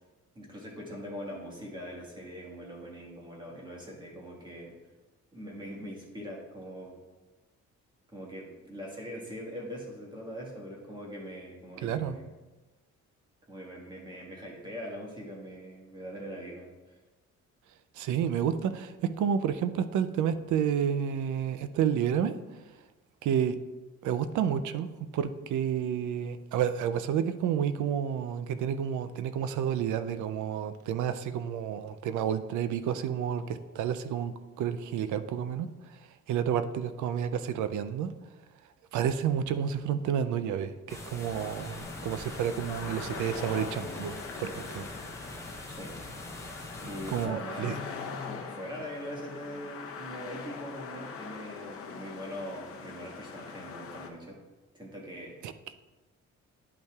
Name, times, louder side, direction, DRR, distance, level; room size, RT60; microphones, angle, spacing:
voice 1, 0.3-4.8 5.3-7.0 8.1-12.3 13.5-17.0 45.7-46.0 46.8-47.8 48.2-54.4 54.7-55.3, equal, 15° right, -2 dB, 1.5 m, -42 dB
voice 2, 11.8-12.2 17.9-22.3 23.2-23.6 24.0-38.1 38.9-44.9 46.8-47.8 55.4-55.5, right 8 dB, 80° right, 12 dB, 0.5 m, -30 dB
sound 1, 40.9-47.3, left 1 dB, 10° left, 0.8 m, -43 dB
sound 2, 41.3-54.1, left 5 dB, 50° left, 0.8 m, -42 dB
10.5 x 5.4 x 2.3 m, 1.2 s
cardioid pair, 150°, 29 cm